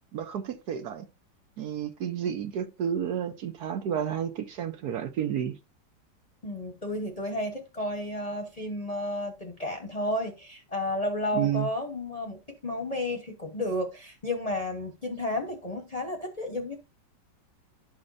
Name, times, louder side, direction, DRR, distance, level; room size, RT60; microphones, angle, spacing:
voice 1, 0.1-1.1 1.6-5.6 11.3-11.7, right 9 dB, 65° right, 1.2 m, -31 dB
voice 2, 6.4-16.7, left 1 dB, 25° left, 0.9 m, -32 dB
12.0 x 4.3 x 2.5 m
omnidirectional pair, 2.0 m